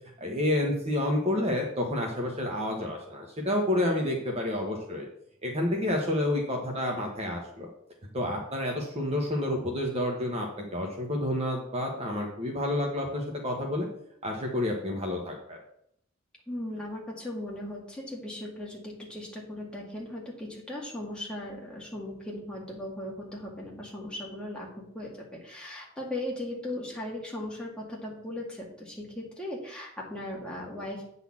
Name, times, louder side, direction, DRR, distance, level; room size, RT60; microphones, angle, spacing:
voice 1, 0.2-5.1 5.4-7.7 8.1-13.9 14.2-15.6, left 1 dB, 30° right, 0 dB, 1.2 m, -29 dB
voice 2, 16.5-24.7 24.9-31.1, left 1 dB, 5° left, -3 dB, 2.2 m, -38 dB
9.2 x 4.1 x 7.2 m, 0.72 s
head